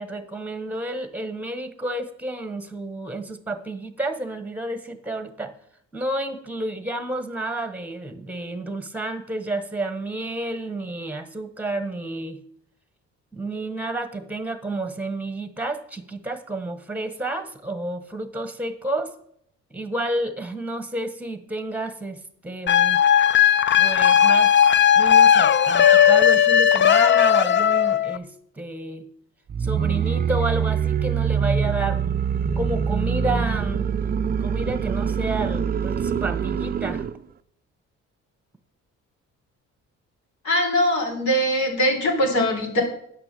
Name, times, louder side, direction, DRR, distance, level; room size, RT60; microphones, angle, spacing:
voice 1, 0.0-5.5 5.9-12.4 13.3-19.1 19.7-23.0 23.8-24.5 25.0-29.1 29.6-32.0 32.6-33.9 34.4-37.0, right 2 dB, 5° right, 10 dB, 1.2 m, -30 dB
sound 1, 22.7-28.2, left 9 dB, 40° left, 0.5 m, -16 dB
sound 2, 29.5-37.2, right 7 dB, 30° right, 0.5 m, -24 dB
voice 2, 40.4-42.8, equal, 70° left, 0 dB, 3.6 m, -21 dB
9.4 x 6.0 x 6.8 m, 0.69 s
cardioid pair, 90°, 30 cm